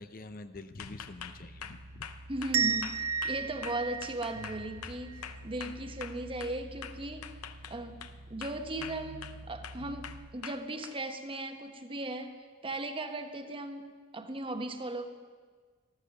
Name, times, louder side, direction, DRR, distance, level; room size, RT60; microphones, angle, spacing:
voice 1, 0.0-2.1 5.4-5.5, left 2 dB, 40° left, 11 dB, 0.6 m, -46 dB
sound 1, 0.8-6.6 6.8-8.2 8.4-9.4 9.6-11.0, left 8 dB, 85° left, 0.7 m, -44 dB
sound 2, 0.8-10.2, right 1 dB, 60° right, 1.1 m, -49 dB
voice 2, 2.3-7.3 7.7-8.0 8.3-12.4 12.6-15.1, right 2 dB, 25° right, 7 dB, 1.0 m, -37 dB
sound 3, 2.5-5.3, right 7 dB, 80° right, 0.7 m, -33 dB
14.0 x 13.5 x 6.6 m, 1.6 s
head